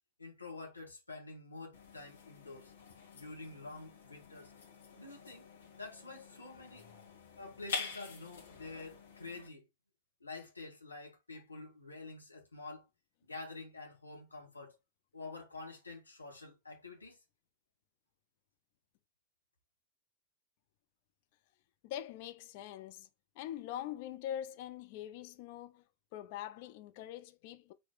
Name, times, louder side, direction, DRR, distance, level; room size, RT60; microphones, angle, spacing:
voice 1, 0.2-2.7 3.1-4.5 4.9-5.5 5.8-6.8 7.4-9.7 10.2-12.8 13.2-14.8 15.1-17.2, left 3 dB, 80° left, 1.9 m, -48 dB
sound 1, 1.7-9.5, left 4 dB, 65° left, 2.5 m, -47 dB
voice 2, 21.8-23.1 23.3-25.8 26.1-27.7, left 11 dB, 50° left, 0.7 m, -43 dB
4.9 x 4.2 x 4.6 m
figure-of-eight pair, 90°, 0 cm